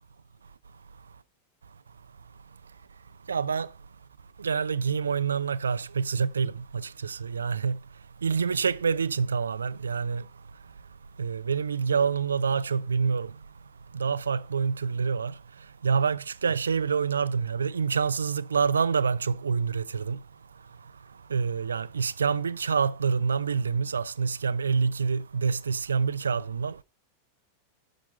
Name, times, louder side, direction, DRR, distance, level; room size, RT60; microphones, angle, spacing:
voice 1, 3.3-3.7 4.4-7.8 8.2-10.2 11.2-13.3 13.9-15.3 15.8-20.2 21.3-26.7, right 5 dB, 70° right, 0.5 m, -27 dB
10.0 x 6.0 x 5.3 m
figure-of-eight pair, 90°, 0 cm